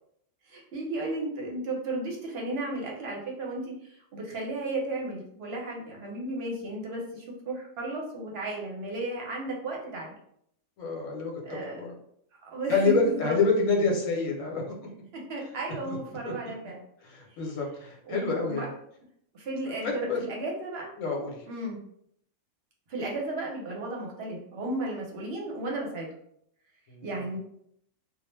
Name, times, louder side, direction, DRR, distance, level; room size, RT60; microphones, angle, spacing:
voice 1, 0.5-10.2 11.4-11.8 12.4-13.3 15.1-16.8 18.1-18.7 19.3-20.9 21.4-21.8 22.9-26.1 27.0-27.4, right 2 dB, 55° right, -2 dB, 0.8 m, -34 dB
voice 2, 10.8-11.3 11.8-11.9 12.7-14.6 15.8-16.0 16.3-16.4 17.0-18.7 19.8-20.2 21.0-21.4 26.9-27.1, left 3 dB, 75° left, 0 dB, 1.1 m, -27 dB
2.3 x 2.1 x 3.1 m, 0.70 s
omnidirectional pair, 1.4 m